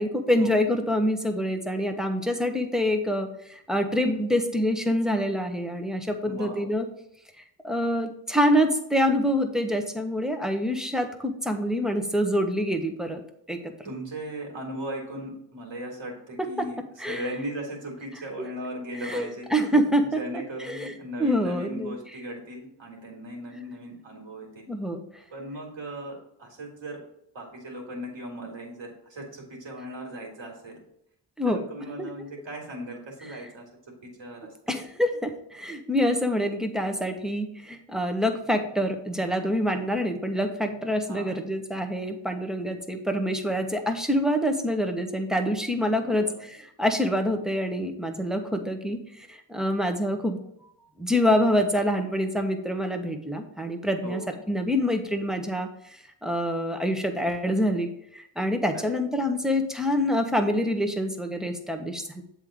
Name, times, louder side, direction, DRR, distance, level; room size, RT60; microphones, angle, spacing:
voice 1, 0.0-6.8 7.6-13.2 13.5-13.9 16.4-16.7 17.0-17.2 19.0-20.9 21.2-21.9 24.7-25.0 31.4-31.6 32.0-32.1 34.7-50.4 51.0-54.2 54.5-62.2, equal, ahead, 4 dB, 1.1 m, -26 dB
voice 2, 6.2-6.7 13.8-16.8 17.0-19.5 20.1-24.7 25.3-27.0 27.3-30.8 31.4-33.6 34.2-34.5 41.1-41.4 46.0-46.5 54.0-54.4 58.7-59.0, right 1 dB, 65° right, 0 dB, 2.4 m, -37 dB
7.6 x 3.7 x 5.0 m, 0.75 s
cardioid pair, 50°, 49 cm